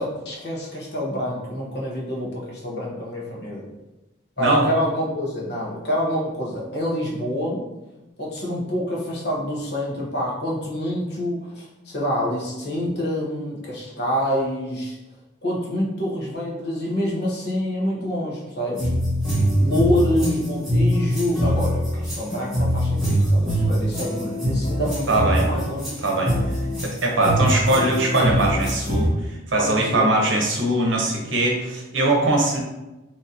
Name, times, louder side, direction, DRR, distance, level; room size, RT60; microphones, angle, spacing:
voice 1, 0.0-3.7 4.4-7.7 8.2-15.0 15.4-18.9 19.6-25.9 26.2-26.5 27.2-27.3 29.5-30.1, equal, 55° left, -4 dB, 1.0 m, -27 dB
sound 1, 18.8-29.1, equal, ahead, 1.3 m, -23 dB
voice 2, 25.1-25.5 26.0-26.3 26.8-29.1 29.5-32.6, right 2 dB, 70° right, -1 dB, 0.8 m, -21 dB
3.7 x 3.0 x 2.8 m, 1.0 s
head